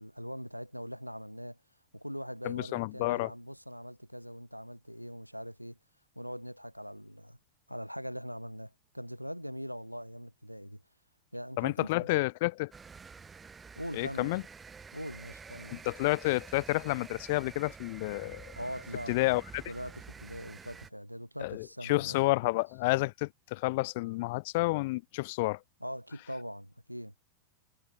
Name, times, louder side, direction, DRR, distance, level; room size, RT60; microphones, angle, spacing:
voice 1, 0.0-1.6 1.9-5.8 6.1-7.4 7.7-10.8 11.3-12.1 13.7-14.4 14.9-15.8 18.5-19.1 19.7-22.2 25.8-27.1, equal, 90° right, 1.7 m, -42 dB
voice 2, 2.4-3.3 11.6-12.7 13.9-14.4 15.7-18.5 19.1-19.6 21.4-25.6, left 22 dB, 50° left, 0.5 m, -30 dB
sound 1, 12.7-20.9, right 5 dB, 15° right, 7.9 m, -49 dB
figure-of-eight pair, 90°, 0 cm